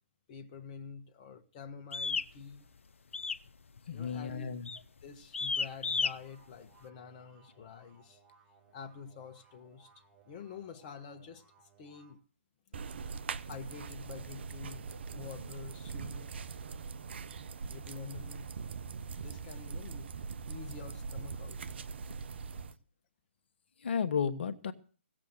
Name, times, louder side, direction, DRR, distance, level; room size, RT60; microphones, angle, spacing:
voice 1, 0.3-2.6 3.9-4.5 4.7-8.2 8.7-9.9 10.3-11.4 11.8-12.2 12.7-12.9 13.4-16.3 17.7-18.5 19.1-20.1 20.4-21.7, left 6 dB, 30° left, 1.3 m, -48 dB
sound 1, 1.9-2.3 3.1-3.5 3.8-4.1 4.7-4.9 5.3-6.1, left 5 dB, 70° left, 0.7 m, -32 dB
voice 2, 3.9-4.7 23.8-24.7, left 6 dB, 55° left, 1.3 m, -33 dB
sound 2, 6.1-12.1, right 5 dB, 10° right, 5.1 m, -64 dB
sound 3, 12.7-22.7, right 5 dB, 55° right, 0.9 m, -42 dB
17.0 x 7.6 x 8.0 m
figure-of-eight pair, 140°, 7 cm